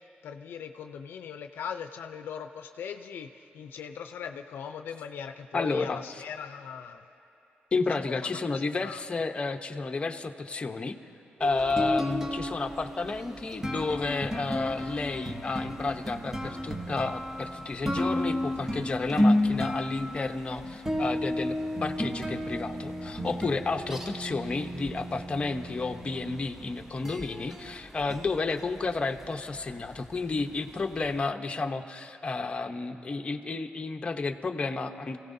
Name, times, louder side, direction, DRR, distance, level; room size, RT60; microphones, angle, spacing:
voice 1, 0.0-7.0 8.8-9.0, left 7 dB, 80° left, 7 dB, 0.5 m, -40 dB
voice 2, 5.5-6.2 7.7-11.0 11.4-35.2, left 3 dB, 30° left, 5 dB, 0.8 m, -31 dB
sound 1, 11.4-31.2, left 1 dB, 15° right, 1.0 m, -33 dB
27.5 x 16.0 x 2.7 m, 3.0 s
cardioid pair, 90°, 4 cm